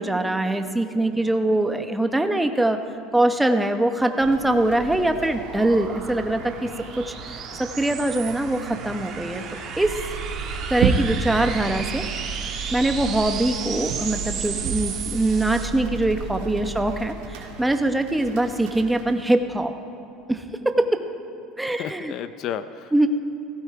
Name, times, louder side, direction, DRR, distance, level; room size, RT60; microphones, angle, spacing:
voice 1, 0.0-2.8 3.1-9.9 10.7-12.1 12.7-19.7 20.3-21.0 21.6-22.1 22.9-23.1, right 1 dB, 5° right, 7 dB, 0.9 m, -23 dB
sound 1, 3.9-15.6, right 6 dB, 45° right, 2.2 m, -35 dB
sound 2, 4.2-19.5, right 3 dB, 80° right, 2.0 m, -43 dB
sound 3, 9.8-17.0, right 6 dB, 60° right, 1.0 m, -30 dB
voice 2, 21.7-23.1, left 9 dB, 55° left, 13 dB, 0.5 m, -34 dB
16.0 x 15.5 x 4.7 m, 2.8 s
supercardioid pair, 120°, 0 cm